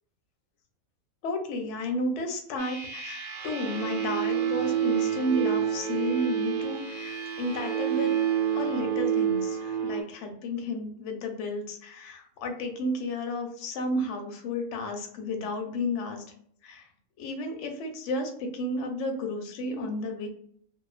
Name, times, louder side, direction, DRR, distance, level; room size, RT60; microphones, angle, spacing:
voice 1, 1.2-8.2 8.5-16.2 16.6-16.9 17.2-20.3, left 1 dB, 65° left, 4 dB, 0.8 m, -32 dB
sound 1, 2.6-10.0, right 9 dB, 65° right, 0.9 m, -28 dB
2.3 x 2.3 x 2.3 m, 0.63 s
omnidirectional pair, 1.5 m